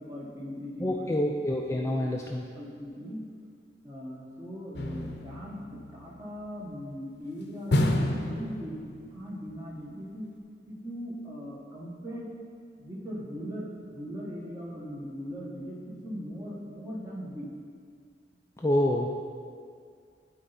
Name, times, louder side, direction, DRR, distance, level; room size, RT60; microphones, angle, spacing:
voice 1, 0.0-1.3 2.6-3.2 3.8-10.3 10.7-12.3 12.8-17.5, equal, 20° right, -5 dB, 1.4 m, -39 dB
voice 2, 0.8-2.4 18.6-19.1, left 1 dB, 15° left, -1 dB, 0.4 m, -27 dB
sound 1, 4.7-6.4 7.7-9.2 9.5-9.6, left 1 dB, 70° left, 0.7 m, -30 dB
12.0 x 4.5 x 4.1 m, 2.2 s
head